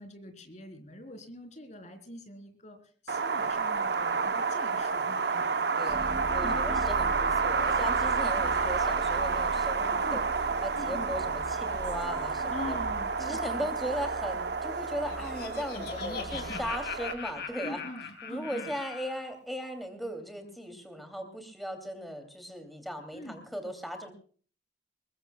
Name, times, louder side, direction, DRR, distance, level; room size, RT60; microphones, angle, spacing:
voice 1, 0.0-2.8 3.0-6.0 6.4-6.6 8.2-8.3 10.0-10.2 10.7-11.1 12.5-13.7 15.7-16.7 17.6-18.7 23.1-23.5, left 1 dB, 40° left, 6 dB, 3.6 m, -44 dB
Wind, 3.1-17.1, right 5 dB, 65° right, 0.8 m, -30 dB
voice 2, 5.7-10.2 10.6-12.8 13.3-17.8 18.2-24.1, equal, ahead, 6 dB, 2.6 m, -37 dB
sound 1, 5.9-17.4, equal, 25° right, 3.6 m, -42 dB
Laughter, 14.8-19.2, left 6 dB, 60° left, 2.7 m, -40 dB
22.0 x 21.5 x 2.2 m, 0.43 s
head